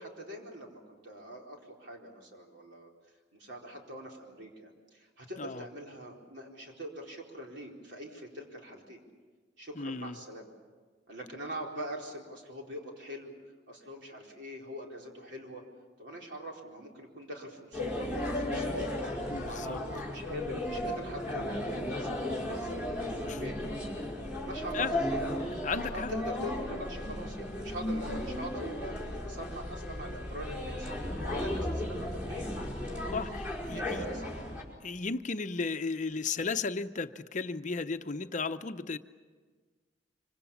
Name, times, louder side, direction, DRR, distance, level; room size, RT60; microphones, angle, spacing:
voice 1, 0.0-2.9 3.3-9.0 9.6-10.5 11.1-13.3 13.7-15.6 16.0-18.9 19.4-24.0 24.4-24.9 25.9-30.9 31.3-32.5 32.9-33.2 33.6-34.4, equal, 70° right, 0 dB, 4.3 m, -43 dB
voice 2, 9.8-10.2 19.3-19.8 23.3-23.4 24.7-25.0 25.4-26.1 33.1-34.0 34.8-39.0, left 4 dB, 40° left, 9 dB, 0.7 m, -35 dB
sound 1, 17.7-34.6, left 1 dB, 5° right, 5.1 m, -35 dB
25.5 x 25.0 x 7.2 m, 1.4 s
head